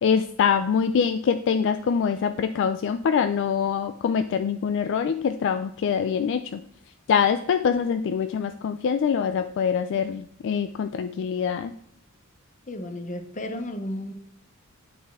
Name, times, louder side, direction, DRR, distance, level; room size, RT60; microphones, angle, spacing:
voice 1, 0.0-6.6 7.1-11.7, left 7 dB, 60° left, 10 dB, 0.3 m, -24 dB
voice 2, 12.7-14.1, left 1 dB, 35° left, 7 dB, 0.8 m, -33 dB
9.5 x 4.1 x 3.6 m, 0.67 s
head